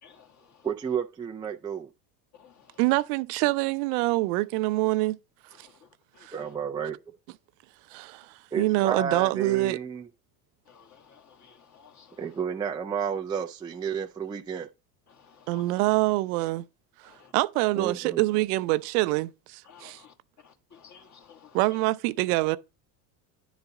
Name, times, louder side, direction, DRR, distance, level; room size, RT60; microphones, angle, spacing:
voice 1, 0.0-0.7 2.3-2.8 5.5-5.9 6.1-6.5 10.7-12.2 15.1-15.8 17.0-17.3 19.6-20.1 20.4-21.8, left 7 dB, 35° left, 1.6 m, -54 dB
voice 2, 0.6-1.9 6.3-7.2 8.5-10.1 12.2-14.7 17.7-18.2, right 7 dB, 10° right, 0.3 m, -31 dB
voice 3, 2.8-5.2 5.6-5.7 6.2-6.3 7.9-9.8 15.5-16.6 17.0-20.0 21.5-22.6, right 20 dB, 65° right, 0.6 m, -25 dB
9.5 x 4.0 x 4.7 m
hypercardioid pair, 90°, 50 cm